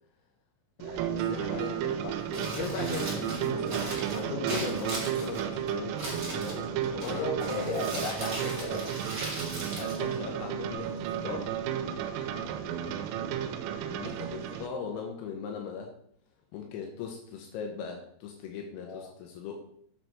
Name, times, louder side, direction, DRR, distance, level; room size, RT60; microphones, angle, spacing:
voice 1, 0.8-7.3 9.7-11.5 13.9-16.0 16.5-19.7, left 6 dB, 80° left, 2 dB, 3.6 m, -39 dB
sound 1, 0.8-14.7, right 9 dB, 85° right, 3.2 m, -33 dB
Crumpling crinkling, 2.2-10.7, right 1 dB, 35° right, 1.6 m, -39 dB
voice 2, 7.0-9.0 12.7-12.9 18.8-19.1, left 3 dB, 60° left, -1 dB, 3.5 m, -36 dB
8.1 x 6.6 x 4.4 m, 0.65 s
omnidirectional pair, 6.0 m